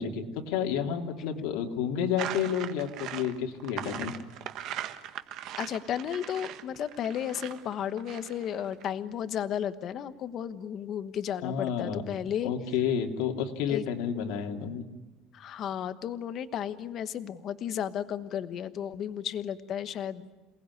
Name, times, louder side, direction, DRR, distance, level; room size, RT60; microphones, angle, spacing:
voice 1, 0.0-4.1 11.4-12.0 12.4-14.8, left 8 dB, 65° left, 3 dB, 2.8 m, -30 dB
sound 1, 2.2-8.8, right 11 dB, 45° right, 1.5 m, -39 dB
voice 2, 5.6-12.5 13.7-13.8 15.3-20.3, left 9 dB, 30° left, 12 dB, 1.2 m, -33 dB
28.0 x 19.5 x 9.7 m, 1.2 s
cardioid pair, 180°, 0 cm